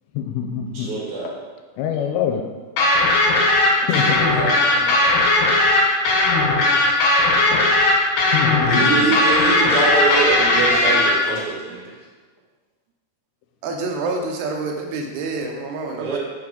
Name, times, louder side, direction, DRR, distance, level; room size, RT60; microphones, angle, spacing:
voice 1, 0.1-0.9 1.2-1.4 1.8-2.4 3.8-4.3 7.5-7.6 8.3-9.1, left 8 dB, 90° left, 4 dB, 2.9 m, -24 dB
voice 2, 0.8-1.3 4.1-5.0 8.7-11.8 16.0-16.2, right 4 dB, 55° right, -5 dB, 2.6 m, -24 dB
sound 1, 2.8-11.1, left 2 dB, 70° left, 3.3 m, -17 dB
voice 3, 13.6-16.2, right 3 dB, 80° right, 2 dB, 2.7 m, -27 dB
6.4 x 6.0 x 3.8 m, 1.4 s
omnidirectional pair, 5.1 m